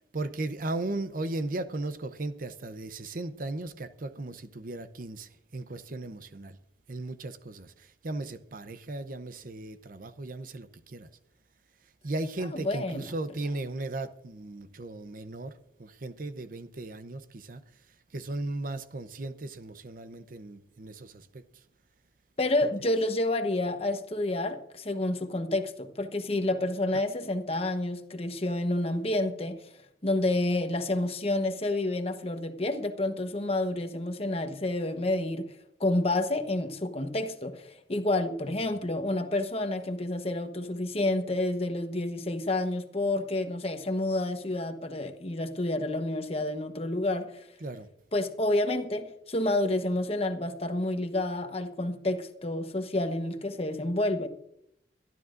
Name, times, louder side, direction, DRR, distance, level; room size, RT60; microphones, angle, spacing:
voice 1, 0.1-6.6 6.9-11.1 12.0-17.6 18.1-21.4 47.6-47.9, right 2 dB, 50° right, 0.7 m, -36 dB
voice 2, 12.5-13.1 22.4-29.6 30.0-35.5 35.8-47.5 48.1-54.3, left 2 dB, 35° left, 1.1 m, -29 dB
23.5 x 12.0 x 2.6 m
head